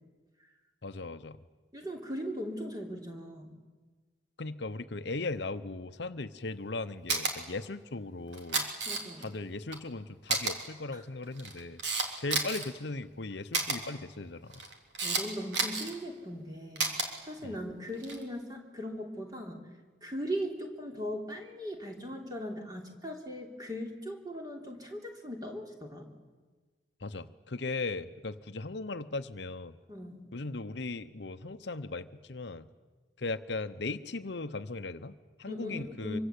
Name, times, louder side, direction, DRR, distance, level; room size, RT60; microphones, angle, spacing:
voice 1, 0.8-1.4 4.4-8.7 9.2-11.8 12.1-14.6 17.4-17.6 27.0-29.8 30.3-32.7 33.2-36.2, left 3 dB, 65° left, 11 dB, 0.9 m, -38 dB
voice 2, 1.7-3.5 8.9-9.3 10.9-11.0 15.0-16.9 17.3-19.6 20.0-26.0 29.9-30.3 35.5-36.2, equal, 20° right, 2 dB, 3.4 m, -39 dB
Camera, 7.1-7.3 8.3-9.3 9.7-9.8 10.3-10.5 11.2-12.7 13.5-13.8 14.5-15.2 15.5-15.9 16.8-17.1 17.9-18.2, right 4 dB, 70° right, 3.5 m, -30 dB
25.0 x 24.5 x 8.4 m, 1.4 s
head